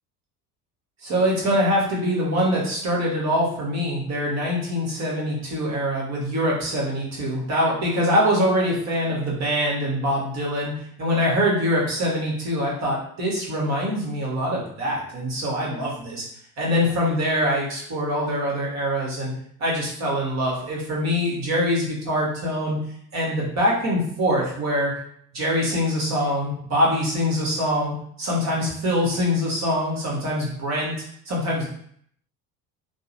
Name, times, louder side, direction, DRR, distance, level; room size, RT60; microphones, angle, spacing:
voice 1, 1.0-10.7 11.0-16.2 16.6-19.3 19.6-22.8 23.1-24.9 25.3-30.9 31.3-31.7, equal, 35° right, -3 dB, 1.1 m, -24 dB
2.5 x 2.0 x 2.8 m, 0.64 s
figure-of-eight pair, 65°, 47 cm